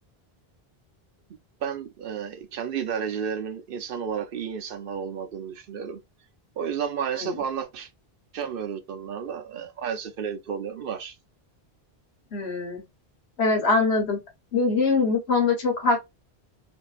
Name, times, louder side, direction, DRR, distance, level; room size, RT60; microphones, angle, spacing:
voice 1, 1.6-6.0 6.6-7.9 8.3-11.2, right 7 dB, 65° right, 0.7 m, -32 dB
voice 2, 12.3-12.8 13.4-14.2 14.5-16.0, left 3 dB, 85° left, 1.3 m, -23 dB
2.6 x 2.6 x 2.3 m
omnidirectional pair, 1.1 m